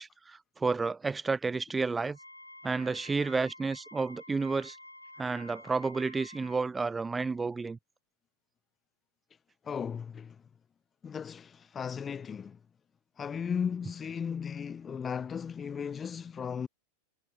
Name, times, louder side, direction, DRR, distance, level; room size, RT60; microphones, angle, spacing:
voice 1, 0.0-2.2 2.6-4.8 5.2-7.8, right 4 dB, 10° right, 4.5 m, -31 dB
Wind instrument woodwind instrument, 2.1-6.6, left 1 dB, 85° left, 4.6 m, -50 dB
voice 2, 9.6-10.4 11.0-12.6 13.2-16.7, left 7 dB, 20° left, 2.8 m, -36 dB
figure-of-eight pair, 90°, 0 cm